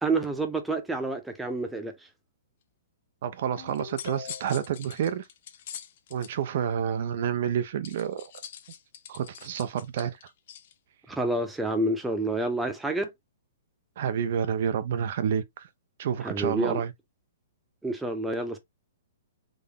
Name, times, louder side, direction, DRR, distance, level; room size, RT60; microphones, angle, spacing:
voice 1, 0.0-1.9 11.1-13.1 16.2-16.8 17.8-18.6, right 2 dB, 5° right, 0.7 m, -28 dB
voice 2, 3.2-5.3 6.1-8.3 9.1-10.3 14.0-15.7 16.0-16.9, right 8 dB, 55° right, 0.5 m, -29 dB
Ringtone, 3.6-4.7, left 7 dB, 70° left, 1.4 m, -42 dB
sound 1, 3.7-6.3 7.8-10.7, left 9 dB, 55° left, 0.7 m, -44 dB
3.7 x 2.0 x 3.5 m
hypercardioid pair, 145°, 0 cm